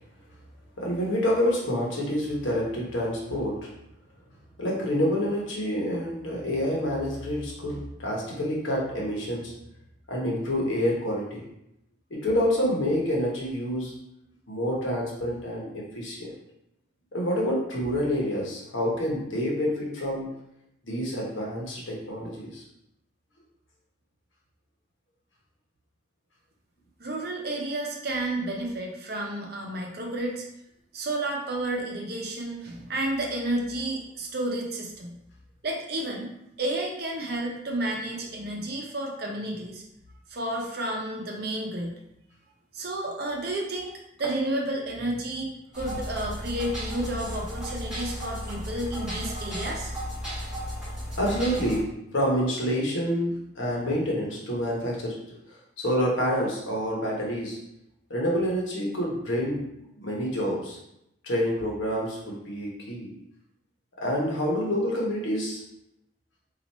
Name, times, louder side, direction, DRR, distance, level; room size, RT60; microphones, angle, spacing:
voice 1, 0.8-3.7 4.6-9.5 10.1-11.4 12.1-13.9 14.5-16.3 17.1-20.3 20.8-22.6 51.2-55.2 55.8-57.6 58.1-59.6 60.0-60.8 61.2-63.1 64.0-65.6, equal, 80° left, -3 dB, 1.1 m, -27 dB
voice 2, 27.0-30.5 30.9-35.2 35.6-36.3 36.6-39.8 40.3-42.0 42.7-43.9 44.2-49.9, right 1 dB, 50° right, 0 dB, 0.6 m, -31 dB
sound 1, 45.7-51.8, equal, 5° right, 1.1 m, -34 dB
2.9 x 2.4 x 4.1 m, 0.81 s
head